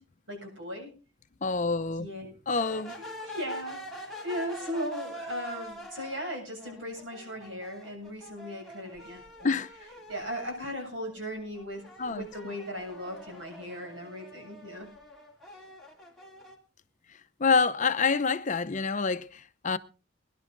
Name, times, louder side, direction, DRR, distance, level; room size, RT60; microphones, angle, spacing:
voice 1, 0.3-0.9 2.0-2.3 3.2-9.6 10.1-14.9, equal, 80° right, 7.6 m, -37 dB
voice 2, 1.4-2.1 2.5-3.0 9.4-9.7 12.0-12.5 17.4-19.8, left 4 dB, 40° left, 0.7 m, -27 dB
sound 1, 2.5-10.7 11.1-16.6, equal, ahead, 2.8 m, -45 dB
20.5 x 11.0 x 3.9 m
head